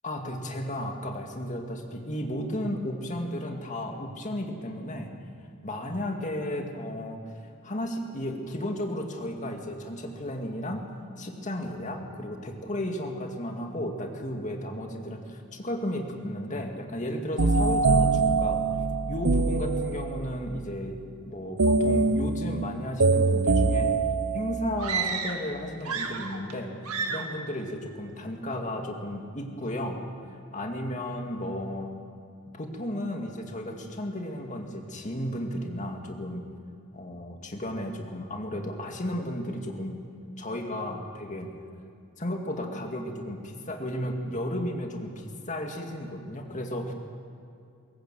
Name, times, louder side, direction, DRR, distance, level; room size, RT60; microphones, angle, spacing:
voice 1, 0.0-5.1 5.6-7.2 7.6-18.6 19.1-21.0 21.2-23.9 24.3-26.7 27.1-31.9 32.5-36.4 36.9-40.0 40.4-41.5 42.2-46.9, left 1 dB, 35° left, 3 dB, 2.2 m, -34 dB
sound 1, 17.4-20.4 21.6-24.9, right 3 dB, 65° right, 0.8 m, -24 dB
sound 2, 24.8-25.5 25.8-26.6 26.8-27.4, right 5 dB, 90° right, 1.9 m, -31 dB
21.5 x 18.0 x 7.7 m, 2.4 s
head